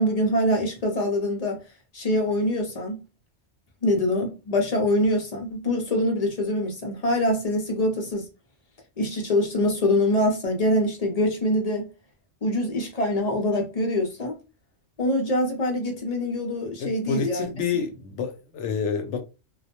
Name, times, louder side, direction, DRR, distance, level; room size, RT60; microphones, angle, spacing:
voice 1, 0.0-1.6 1.9-3.0 3.8-8.3 9.0-11.9 12.4-14.4 15.0-17.5, left 1 dB, 45° left, 0.6 m, -24 dB
voice 2, 16.8-19.2, left 6 dB, 85° left, 0.9 m, -28 dB
2.3 x 2.0 x 2.8 m
omnidirectional pair, 1.2 m